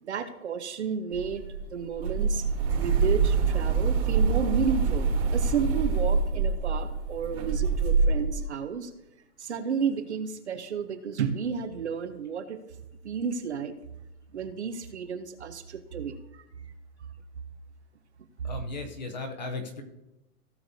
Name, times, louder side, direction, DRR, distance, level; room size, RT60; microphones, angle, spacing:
voice 1, 0.0-2.5 2.8-8.9 9.4-12.6 13.0-13.7 14.3-16.4, right 6 dB, 45° right, 10 dB, 0.7 m, -32 dB
sound 1, 1.1-8.4, right 5 dB, 65° right, 3.2 m, -25 dB
voice 2, 18.4-19.8, left 3 dB, 30° left, 6 dB, 0.7 m, -36 dB
16.0 x 6.7 x 2.7 m, 0.94 s
hypercardioid pair, 170°, 48 cm